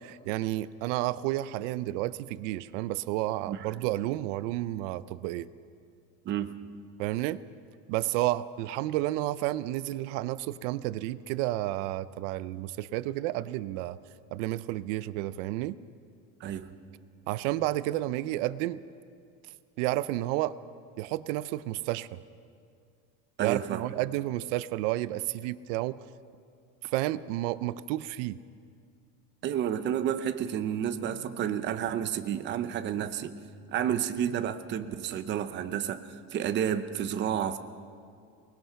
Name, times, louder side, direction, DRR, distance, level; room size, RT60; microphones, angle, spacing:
voice 1, 0.0-5.5 7.0-7.4 7.9-14.0 14.3-15.8 17.3-18.8 19.8-20.5 21.0-22.2 23.4-26.0 26.8-28.4, right 16 dB, 80° right, 16 dB, 0.7 m, -31 dB
voice 2, 23.4-23.8 29.4-33.4 33.7-37.6, right 9 dB, 30° right, 10 dB, 0.7 m, -30 dB
24.0 x 20.0 x 5.8 m, 2.3 s
cardioid pair, 170°, 37 cm